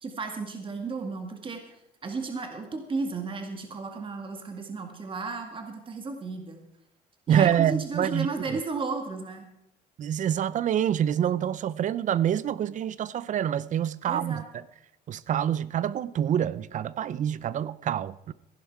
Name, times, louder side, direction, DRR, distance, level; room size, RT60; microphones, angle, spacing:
voice 1, 0.0-6.6 7.3-9.4 14.0-14.4, right 4 dB, 30° right, 2.0 m, -34 dB
voice 2, 7.3-8.6 10.0-14.6 15.1-18.3, right 10 dB, 50° right, 0.5 m, -26 dB
15.5 x 11.0 x 4.7 m
cardioid pair, 110°, 17 cm